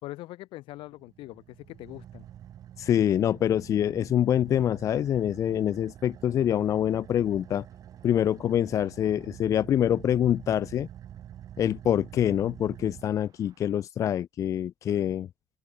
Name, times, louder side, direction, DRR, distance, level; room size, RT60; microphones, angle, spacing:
voice 1, 0.0-2.3, left 18 dB, 70° left, 6.1 m, -42 dB
Car / Idling, 0.7-13.7, right 10 dB, 40° right, 4.7 m, -47 dB
voice 2, 2.8-7.6 8.0-10.9 11.6-15.3, left 10 dB, 35° left, 0.5 m, -25 dB
open air
cardioid pair, 170°, 9 cm